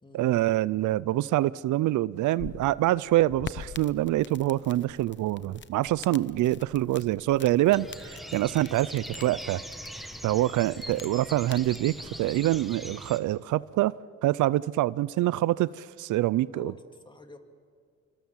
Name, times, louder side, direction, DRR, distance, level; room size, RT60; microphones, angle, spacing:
voice 1, 0.1-9.6 10.2-16.7, right 15 dB, 80° right, 0.6 m, -25 dB
sound 1, 2.1-12.8, left 7 dB, 40° left, 0.8 m, -47 dB
sound 2, 7.7-13.2, equal, ahead, 1.9 m, -42 dB
voice 2, 16.5-17.4, left 2 dB, 15° left, 2.7 m, -47 dB
27.5 x 25.0 x 7.4 m
cardioid pair, 90°, 30 cm